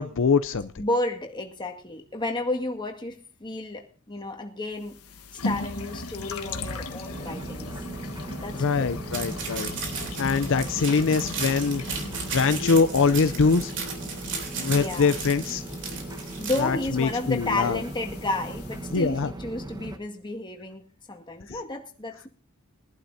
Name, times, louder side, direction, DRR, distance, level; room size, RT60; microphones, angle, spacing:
voice 1, 0.0-0.7 8.5-9.7 10.2-12.0 12.3-13.7 14.6-15.6 16.6-17.8 18.9-19.3 21.5-21.6, left 4 dB, 60° left, 11 dB, 0.5 m, -23 dB
voice 2, 0.8-5.0 5.3-8.9 14.7-15.1 16.4-22.3, left 2 dB, 20° left, 2 dB, 2.0 m, -32 dB
sound 1, 4.8-19.1, left 2 dB, 80° left, 1.5 m, -38 dB
sound 2, 7.1-20.0, right 1 dB, 20° right, 1.0 m, -38 dB
sound 3, 9.1-16.6, right 5 dB, 60° right, 3.4 m, -35 dB
22.5 x 11.5 x 2.7 m, 0.39 s
head